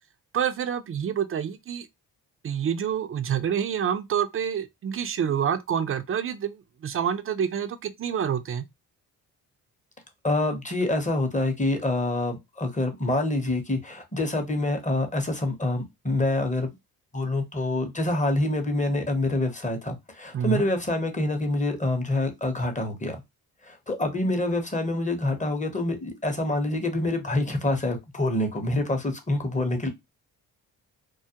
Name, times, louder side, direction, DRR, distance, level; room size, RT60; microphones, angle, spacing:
voice 1, 0.3-1.9 2.4-8.6 20.3-20.7, right 8 dB, 35° right, 0.4 m, -27 dB
voice 2, 10.2-16.7 17.1-23.2 23.6-29.9, left 2 dB, 20° left, 0.8 m, -26 dB
2.3 x 2.0 x 2.8 m
supercardioid pair, 55°, 42 cm